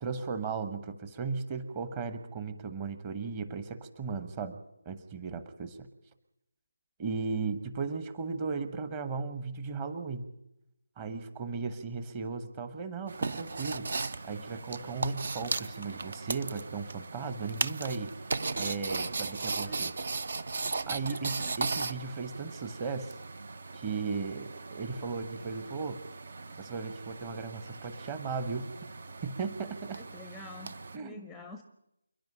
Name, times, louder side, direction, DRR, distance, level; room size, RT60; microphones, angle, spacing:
voice 1, 0.0-4.6 4.8-5.9 7.0-10.3 11.0-18.1 18.6-19.9 20.8-23.1 23.7-26.0 26.6-28.7 29.2-30.0 30.9-31.3, right 4 dB, 20° right, 11 dB, 1.2 m, -36 dB
sound 1, 13.1-31.0, right 3 dB, 45° right, 0.8 m, -37 dB
voice 2, 19.6-20.0 21.1-21.5 30.0-31.6, left 2 dB, ahead, 7 dB, 0.8 m, -48 dB
28.5 x 11.0 x 8.9 m, 0.86 s
figure-of-eight pair, 155°, 0 cm